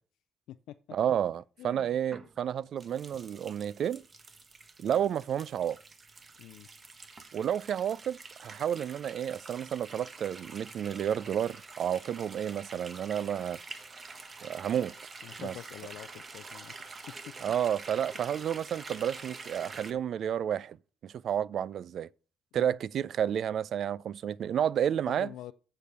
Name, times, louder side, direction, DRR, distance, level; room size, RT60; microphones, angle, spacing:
voice 1, 0.9-4.0 4.8-5.8 7.3-13.6 14.4-14.9 15.4-15.6 17.4-20.8 21.0-22.1 22.5-25.3, right 9 dB, 65° right, 0.3 m, -31 dB
voice 2, 1.6-1.9 6.4-6.7 15.2-16.7 22.5-22.8 25.1-25.5, left 13 dB, 90° left, 0.3 m, -46 dB
sound 1, 2.1-19.9, right 4 dB, 40° right, 1.2 m, -47 dB
8.4 x 6.8 x 5.9 m
cardioid pair, 90°, 0 cm